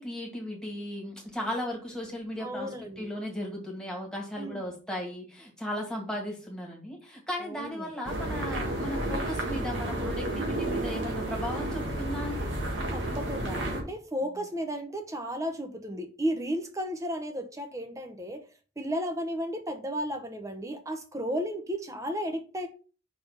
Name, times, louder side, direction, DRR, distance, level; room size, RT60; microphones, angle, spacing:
voice 1, 0.0-12.5, equal, 5° left, 2.0 m, -36 dB
voice 2, 2.4-3.1 4.4-4.7 7.4-7.9 12.9-18.4 18.8-22.7, equal, 15° right, 0.8 m, -34 dB
sound 1, 8.0-13.8, right 1 dB, 75° right, 1.8 m, -31 dB
5.5 x 4.2 x 5.5 m
head